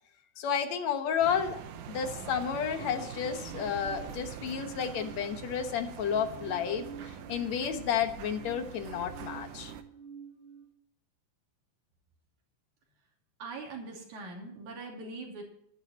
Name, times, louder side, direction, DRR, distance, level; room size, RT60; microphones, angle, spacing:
voice 1, 0.4-1.6 1.9-9.7, left 8 dB, 65° left, 8 dB, 2.3 m, -31 dB
sound 1, 1.2-9.8, right 9 dB, 85° right, 2.5 m, -44 dB
sound 2, 3.3-5.6 6.0-10.7, right 6 dB, 25° right, 1.4 m, -49 dB
voice 2, 13.4-15.4, right 3 dB, 70° right, 0 dB, 4.2 m, -42 dB
11.5 x 11.5 x 4.2 m, 0.74 s
omnidirectional pair, 3.5 m